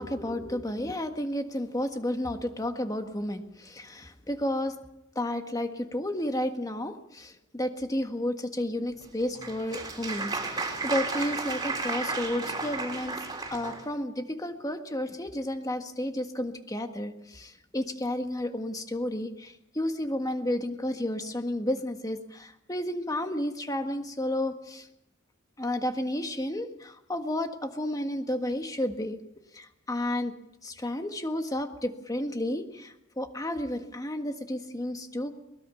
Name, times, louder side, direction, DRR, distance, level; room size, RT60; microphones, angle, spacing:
voice 1, 0.0-4.7 5.1-13.2 13.5-24.9 25.6-29.2 29.5-30.3 30.6-35.3, left 1 dB, 20° left, 6 dB, 1.6 m, -32 dB
Applause, 9.0-13.8, right 3 dB, 20° right, 3.7 m, -33 dB
23.0 x 20.5 x 5.7 m, 0.86 s
head